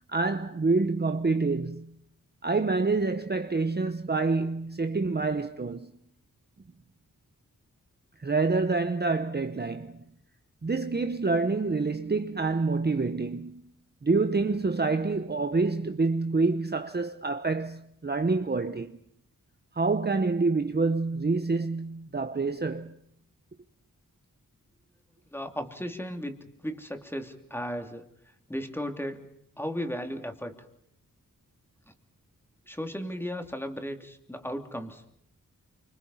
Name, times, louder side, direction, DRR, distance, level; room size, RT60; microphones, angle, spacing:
voice 1, 0.1-1.9 2.4-5.9 8.2-10.0 10.6-13.6 14.0-19.0 19.7-23.0, right 3 dB, 30° right, 0.9 m, -27 dB
voice 2, 25.3-29.3 29.6-30.6 31.9-32.0 32.7-35.0, equal, 5° left, 3.0 m, -36 dB
28.5 x 26.0 x 5.6 m
wide cardioid pair, 110°, 33 cm